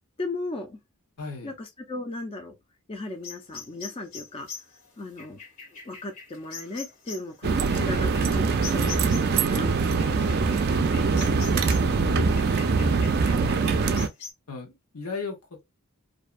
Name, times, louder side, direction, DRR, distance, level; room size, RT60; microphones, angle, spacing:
voice 1, 0.2-0.8 1.4-2.5 2.9-4.5 5.0-5.4 5.8-8.4 8.7-9.7, left 2 dB, 25° left, 0.4 m, -36 dB
voice 2, 1.2-1.5 11.8-12.6 13.3-13.9 14.5-15.7, left 4 dB, 85° left, 1.0 m, -38 dB
sound 1, 3.2-9.4 10.0-12.0 12.4-14.3, left 6 dB, 70° left, 1.3 m, -42 dB
sound 2, 7.4-14.1, right 4 dB, 45° right, 0.4 m, -23 dB
2.6 x 2.2 x 2.4 m
head